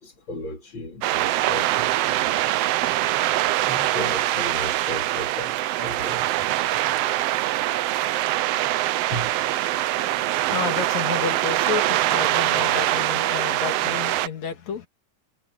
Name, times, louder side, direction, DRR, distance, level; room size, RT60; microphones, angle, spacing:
voice 1, 0.0-2.6 3.6-6.4 8.6-8.7 9.1-9.5 10.2-10.3, equal, 40° left, 3.4 m, -36 dB
sound 1, 1.0-14.3, right 15 dB, 80° right, 1.4 m, -23 dB
voice 2, 9.7-10.2 10.5-14.9, left 6 dB, 65° left, 3.3 m, -31 dB
omnidirectional pair, 3.5 m